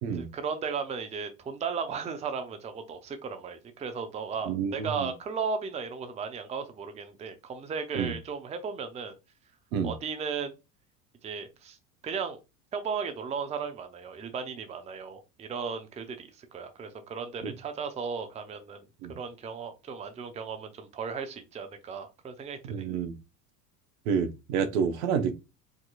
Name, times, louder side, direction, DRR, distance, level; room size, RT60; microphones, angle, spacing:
voice 1, 0.1-9.1 9.8-10.5 11.2-11.8 12.0-12.4 12.7-18.8 19.2-22.6, right 5 dB, 15° right, 0.6 m, -35 dB
voice 2, 4.5-5.1 7.9-8.1 9.7-9.9 17.4-17.5 19.0-19.2 22.7-23.1 24.1-25.4, right 7 dB, 60° right, 0.8 m, -29 dB
4.8 x 2.8 x 2.3 m
figure-of-eight pair, 75°, 48 cm